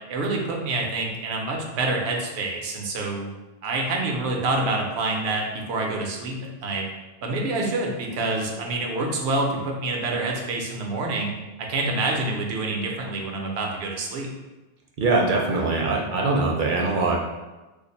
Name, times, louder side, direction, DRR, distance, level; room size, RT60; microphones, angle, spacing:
voice 1, 0.1-3.3 3.6-6.8 7.2-11.3 11.6-14.3, right 2 dB, 90° right, 1 dB, 0.9 m, -27 dB
voice 2, 15.0-17.2, right 3 dB, 60° right, 0 dB, 0.6 m, -22 dB
2.5 x 2.4 x 4.0 m, 1.1 s
omnidirectional pair, 1.1 m